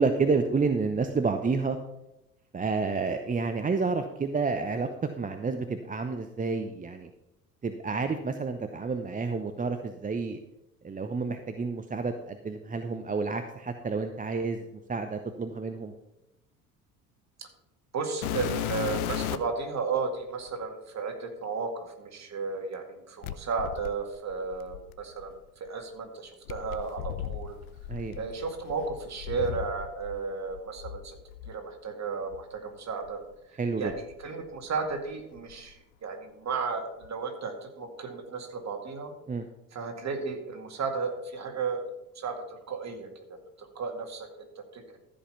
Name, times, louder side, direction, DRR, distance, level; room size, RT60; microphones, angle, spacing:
voice 1, 0.0-1.8 2.5-4.9 5.2-7.1 7.6-10.4 10.8-14.6 14.9-15.9 27.9-28.2 33.6-33.9 39.3-39.4, right 4 dB, 20° right, 8 dB, 0.8 m, -29 dB
voice 2, 17.9-25.3 25.6-27.6 28.2-31.2 31.5-33.2 33.8-39.1 39.7-41.9 42.2-45.0, right 4 dB, 35° right, 5 dB, 2.2 m, -34 dB
sound 1, 18.2-19.6 20.5-20.6 23.2-25.3 26.5-30.2 30.5-31.5 32.3-32.4 33.0-33.1 33.8-34.9 35.2-35.7 37.0-37.1, left 12 dB, 70° left, 0.7 m, -36 dB
14.0 x 5.3 x 5.7 m, 0.89 s
figure-of-eight pair, 60°, 45 cm